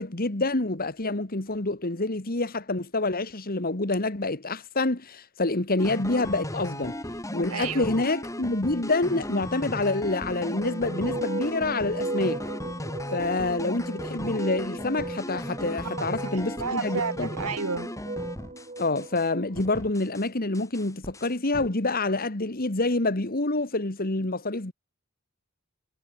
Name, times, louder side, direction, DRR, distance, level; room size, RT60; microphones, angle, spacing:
voice 1, 0.0-7.0 7.3-12.4 13.1-17.3 18.8-24.7, left 2 dB, 40° left, 1.8 m, -27 dB
sound 1, 5.8-19.3 19.6-20.3 20.5-21.7, left 1 dB, 15° left, 7.5 m, -36 dB
voice 2, 7.5-7.9 16.0-16.1 16.6-17.9, right 5 dB, 85° right, 1.6 m, -31 dB
sound 2, 10.4-19.7, right 2 dB, 30° right, 2.0 m, -36 dB
head